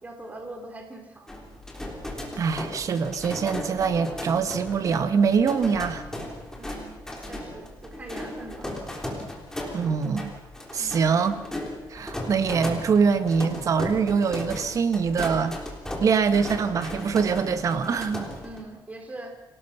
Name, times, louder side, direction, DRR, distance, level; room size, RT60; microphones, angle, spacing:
voice 1, 0.0-1.5 6.5-8.7 10.8-11.1 18.4-19.3, right 2 dB, 20° right, 3 dB, 3.6 m, -42 dB
sound 1, 1.3-18.6, left 1 dB, 5° left, 3.6 m, -36 dB
voice 2, 2.4-6.0 9.7-10.3 10.7-11.4 11.9-15.6 16.0-18.3, right 6 dB, 45° right, 10 dB, 1.5 m, -24 dB
26.5 x 18.0 x 5.9 m, 0.98 s
cardioid pair, 150°, 8 cm